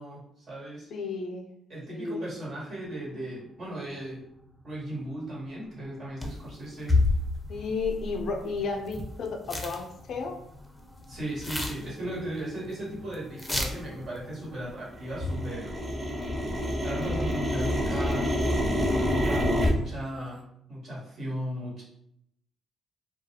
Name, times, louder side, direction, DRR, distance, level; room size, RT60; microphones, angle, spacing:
voice 1, 0.0-0.9 1.7-4.2 4.6-6.9 11.1-15.7 16.8-18.3 18.7-20.4 20.7-21.8, right 1 dB, 65° right, -6 dB, 1.4 m, -36 dB
voice 2, 0.9-1.5 1.9-2.3 7.5-10.4, left 4 dB, 70° left, 3 dB, 0.4 m, -33 dB
sound 1, 6.2-6.5 6.9-9.2 9.5-9.8 10.1-10.6 11.0-12.4 12.6-12.7 13.1-13.2 13.4-13.9 15.1-15.5, left 2 dB, 15° left, 0.6 m, -29 dB
sound 2, 8.9-9.0 9.6-9.7 10.3-10.6 11.1-11.2 11.4-12.0 12.3-14.6 14.9-19.7, equal, 20° right, 1.0 m, -28 dB
2.3 x 2.3 x 2.7 m, 0.74 s
supercardioid pair, 60°, 0 cm